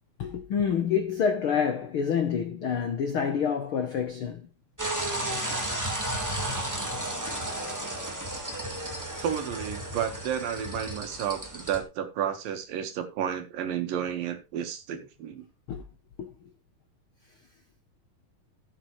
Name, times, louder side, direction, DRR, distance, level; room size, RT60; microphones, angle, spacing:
voice 1, 0.2-4.4 6.2-6.3 9.1-9.2 15.7-15.8 16.2-16.3, left 7 dB, 80° left, 1.2 m, -27 dB
sound 1, 4.8-11.8, right 1 dB, 30° right, 0.3 m, -33 dB
voice 2, 9.2-15.4, right 9 dB, 80° right, 3.2 m, -32 dB
15.0 x 7.7 x 3.2 m
omnidirectional pair, 3.9 m